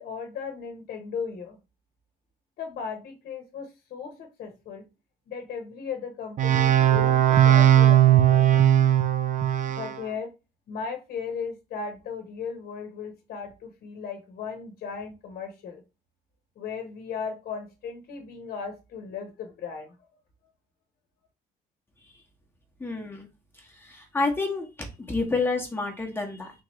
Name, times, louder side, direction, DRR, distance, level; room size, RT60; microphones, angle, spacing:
voice 1, 0.0-1.6 2.6-4.8 5.3-8.6 9.7-10.3 10.7-15.8 16.6-19.9, left 6 dB, 60° left, 5 dB, 0.9 m, -36 dB
sound 1, 6.4-10.0, right 11 dB, 50° right, 0.5 m, -18 dB
voice 2, 22.8-23.3 23.6-24.7 25.1-26.5, left 3 dB, 15° left, 1 dB, 1.0 m, -29 dB
3.8 x 2.9 x 3.0 m, 0.27 s
cardioid pair, 110°, 17 cm